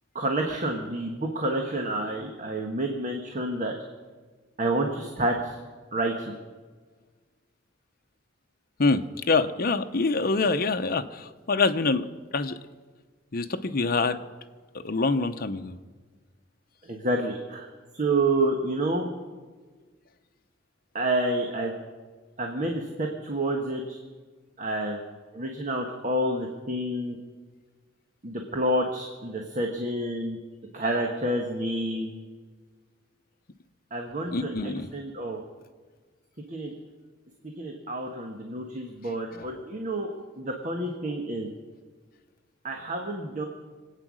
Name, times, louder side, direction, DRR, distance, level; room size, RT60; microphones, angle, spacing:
voice 1, 0.1-3.7 4.6-5.6 5.9-6.3 16.9-17.7 17.9-19.1 20.9-21.7 22.4-24.0 24.6-25.0 25.3-27.2 28.2-30.4 30.7-32.2 33.9-34.5 34.9-35.4 36.5-36.7 37.6-40.1 40.4-41.5 42.6-43.4, right 1 dB, 40° right, 2 dB, 1.3 m, -29 dB
voice 2, 8.8-12.1 12.3-12.6 13.3-14.2 14.8-15.8 34.3-34.9 39.4-39.5, left 3 dB, 50° left, 8 dB, 0.8 m, -25 dB
24.0 x 9.0 x 6.3 m, 1.4 s
head